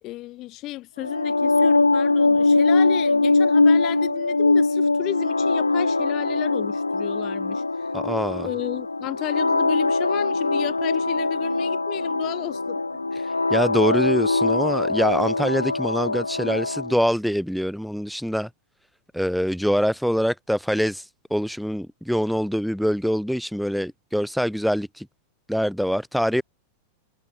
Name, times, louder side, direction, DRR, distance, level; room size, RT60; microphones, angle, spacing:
voice 1, 0.0-7.9 8.3-12.8 13.1-13.3, left 17 dB, 35° left, 3.2 m, -33 dB
sound 1, 1.0-16.9, left 3 dB, 80° left, 0.7 m, -22 dB
voice 2, 7.9-8.5 13.3-18.5 19.1-25.1 25.5-26.4, equal, ahead, 1.2 m, -24 dB
figure-of-eight pair, 90°, 0 cm